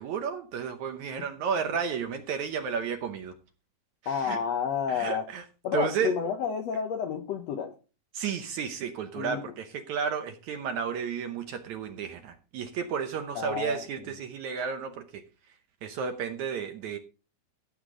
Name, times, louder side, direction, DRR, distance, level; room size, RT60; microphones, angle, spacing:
voice 1, 0.0-3.3 4.0-4.4 4.9-5.4 5.7-6.1 8.1-15.2 15.8-17.0, right 7 dB, 70° right, 7 dB, 1.9 m, -32 dB
voice 2, 4.0-5.3 5.6-7.7 9.1-9.4 13.3-14.1, left 7 dB, 70° left, 6 dB, 1.6 m, -30 dB
15.5 x 8.0 x 3.8 m, 0.33 s
omnidirectional pair, 4.2 m